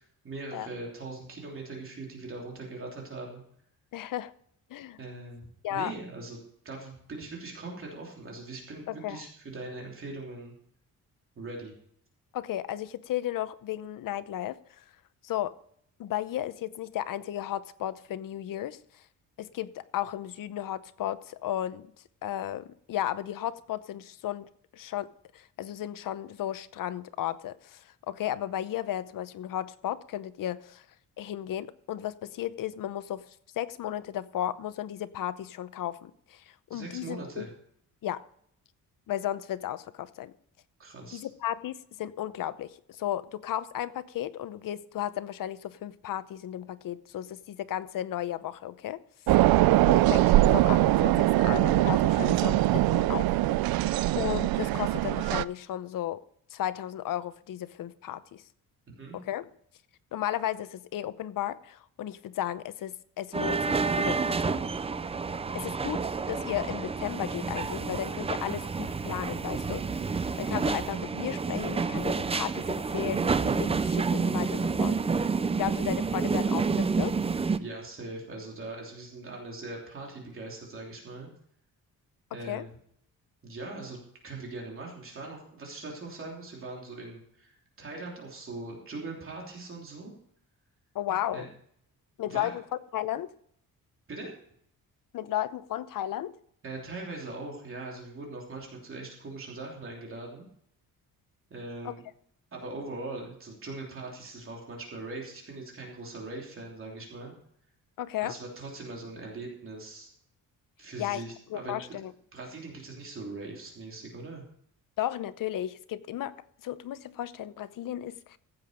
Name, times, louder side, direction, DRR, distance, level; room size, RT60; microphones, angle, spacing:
voice 1, 0.2-3.4 5.0-6.4 6.6-10.5 11.4-11.7 36.7-37.5 40.8-41.2 58.9-59.2 77.6-81.3 82.3-82.7 83.4-90.1 91.3-91.5 92.3-92.5 94.1-94.3 96.6-100.4 101.5-102.0 102.5-107.3 108.2-110.1 110.8-111.8 112.3-114.4, right 2 dB, 35° right, 3.2 m, -41 dB
voice 2, 3.9-4.3 4.7-5.0 5.6-5.9 8.9-9.2 12.3-14.8 15.2-15.6 16.0-19.0 19.4-21.9 22.2-30.8 31.2-37.5 38.0-38.2 39.1-40.3 41.1-49.0 49.9-53.3 54.2-56.2 56.5-58.4 59.1-59.5 60.1-64.6 65.5-70.1 70.4-75.0 75.6-77.2 82.4-82.6 90.9-91.5 92.2-93.3 95.1-96.3 101.8-101.9 108.0-108.4 111.0-111.2 111.5-112.1 115.0-116.4 116.6-118.4, left 12 dB, 65° left, 0.8 m, -34 dB
sound 1, 49.3-55.4, right 16 dB, 90° right, 0.5 m, -22 dB
sound 2, 63.3-77.6, right 4 dB, 15° right, 0.4 m, -29 dB
15.5 x 7.8 x 5.1 m
cardioid pair, 160°, 35 cm